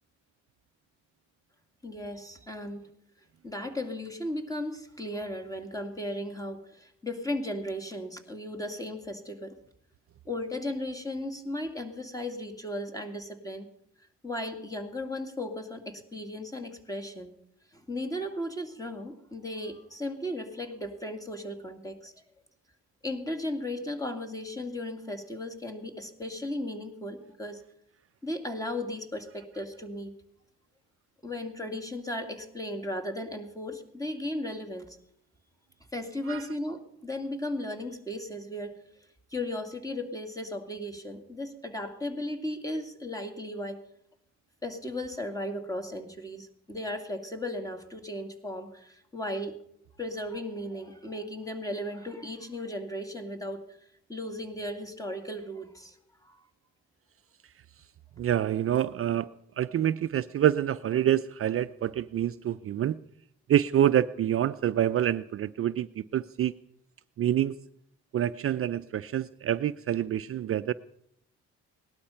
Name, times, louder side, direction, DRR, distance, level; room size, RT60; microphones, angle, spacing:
voice 1, 1.8-2.9 3.4-9.6 10.3-13.7 14.2-17.3 17.7-22.1 23.0-27.6 28.2-30.1 31.2-35.0 35.9-38.8 39.3-43.8 44.6-49.6 50.0-53.7 54.1-56.5, left 1 dB, 10° left, 6 dB, 2.3 m, -36 dB
voice 2, 58.2-59.3 59.6-63.0 63.5-66.5 67.2-67.6 68.1-70.7, right 11 dB, 50° right, 12 dB, 0.5 m, -27 dB
18.0 x 12.0 x 5.7 m, 0.70 s
cardioid pair, 90°, 30 cm